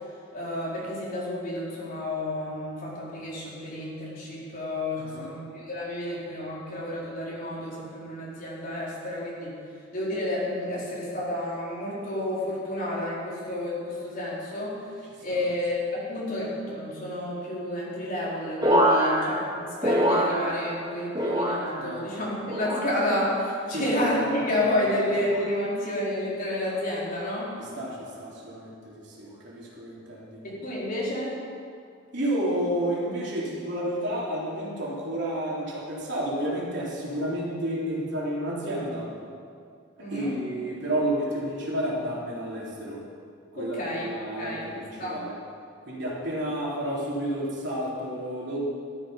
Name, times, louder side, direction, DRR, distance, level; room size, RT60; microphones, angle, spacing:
voice 1, 0.3-9.5 9.9-14.8 15.2-27.5 30.4-31.4 40.0-40.4 43.6-44.1 44.4-44.6 45.0-45.2, left 1 dB, 45° left, -6 dB, 4.3 m, -30 dB
voice 2, 5.0-5.3 15.3-15.4 21.8-22.0 23.7-23.8 24.2-24.4 27.6-30.4 32.1-39.1 40.1-43.0 43.5-45.3 45.8-48.6, right 1 dB, 65° right, -5 dB, 3.7 m, -31 dB
sound 1, 18.6-20.8 21.1-22.0 22.5-23.2 23.8-24.2 25.1-25.5 26.4-26.7, equal, 25° right, 3.0 m, -26 dB
13.5 x 13.0 x 5.7 m, 2.3 s
head